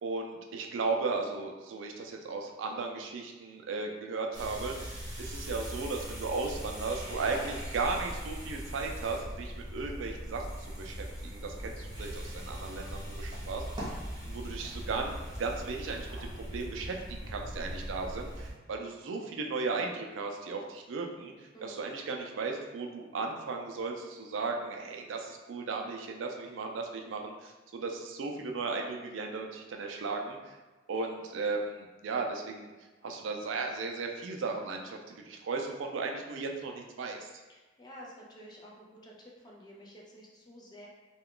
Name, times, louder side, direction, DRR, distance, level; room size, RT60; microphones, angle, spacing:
voice 1, 0.0-13.6 14.2-21.3 21.6-30.4 30.9-32.7 33.0-37.3, right 4 dB, 90° right, 2 dB, 0.4 m, -36 dB
sound 1, 4.3-18.5, equal, 25° right, 0.9 m, -40 dB
voice 2, 21.5-21.8 37.5-40.9, equal, 20° left, -2 dB, 0.5 m, -51 dB
2.3 x 2.3 x 3.6 m, 1.2 s
head